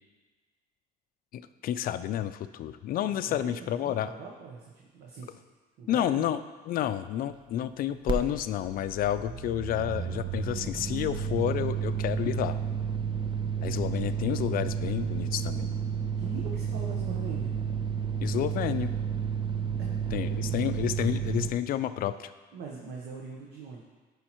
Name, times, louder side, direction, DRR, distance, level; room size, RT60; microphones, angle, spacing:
voice 1, 1.3-4.1 5.9-6.4 6.7-12.6 13.6-15.7 18.2-18.9 20.1-22.3, left 11 dB, 60° left, 12 dB, 0.4 m, -30 dB
voice 2, 3.0-5.4 5.8-6.3 16.2-17.6 19.8-20.7 22.5-23.8, right 4 dB, 75° right, -1 dB, 1.0 m, -42 dB
sound 1, 8.1-8.2 8.4-21.5, right 7 dB, 30° right, 0.6 m, -31 dB
9.8 x 5.6 x 3.0 m, 1.3 s
cardioid pair, 110°, 17 cm